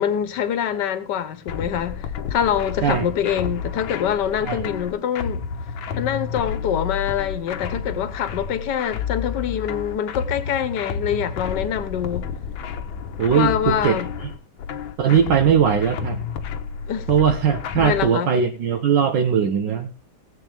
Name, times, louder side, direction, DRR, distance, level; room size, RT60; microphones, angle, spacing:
voice 1, 0.0-5.4 6.0-12.3 13.3-14.1 16.9-17.1 17.8-18.3, left 9 dB, 60° left, 1.6 m, -25 dB
sound 1, 1.5-18.1, left 6 dB, 85° left, 1.7 m, -31 dB
voice 2, 13.2-14.0 15.0-16.2 17.1-19.9, right 7 dB, 65° right, 1.6 m, -19 dB
18.5 x 8.1 x 3.4 m
omnidirectional pair, 2.2 m